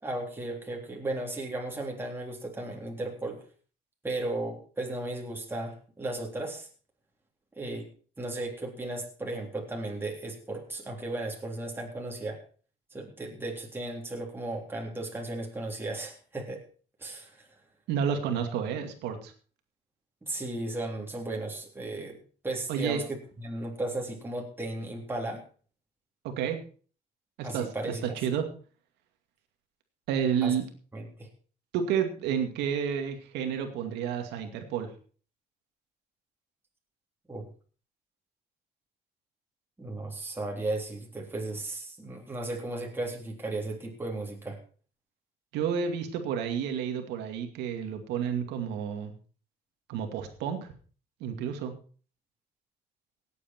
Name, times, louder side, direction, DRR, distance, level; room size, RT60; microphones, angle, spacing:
voice 1, 0.0-3.4 4.0-6.7 7.6-7.9 8.2-12.4 12.9-16.6 17.0-17.5 20.2-22.2 22.4-23.0 23.4-25.4 27.4-28.0 30.4-30.5 30.9-31.3 37.3-37.5 39.8-44.6, right 2 dB, 15° right, -1 dB, 3.5 m, -35 dB
voice 2, 17.9-19.3 22.7-23.0 26.2-26.6 27.4-28.4 30.1-30.6 31.7-34.9 45.5-49.1 49.9-50.7 51.2-51.7, right 8 dB, 90° right, 6 dB, 2.4 m, -30 dB
17.5 x 8.6 x 4.5 m, 0.41 s
cardioid pair, 110°, 17 cm